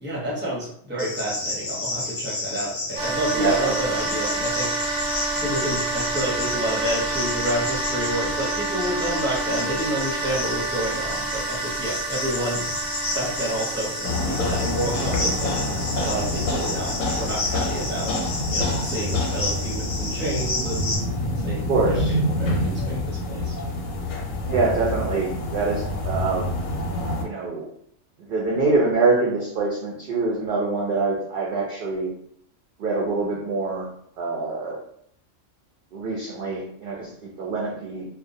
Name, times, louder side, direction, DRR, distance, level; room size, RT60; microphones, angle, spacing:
voice 1, 0.0-4.7 5.4-12.6 13.1-15.6 16.0-18.1 18.5-20.9 21.4-23.5, right 1 dB, 10° right, -6 dB, 0.6 m, -29 dB
Cricket, 1.0-21.0, left 2 dB, 45° left, 0.5 m, -31 dB
sound 1, 3.0-19.7, right 3 dB, 90° right, 1.0 m, -30 dB
voice 2, 3.3-3.7 21.7-22.2 24.5-26.6 27.2-27.7 28.2-32.1 32.8-33.9 34.2-34.8 35.9-38.1, right 3 dB, 65° right, -4 dB, 0.5 m, -25 dB
sound 2, 14.0-27.2, left 1 dB, 90° left, 1.0 m, -27 dB
2.3 x 2.1 x 2.6 m, 0.67 s
omnidirectional pair, 1.4 m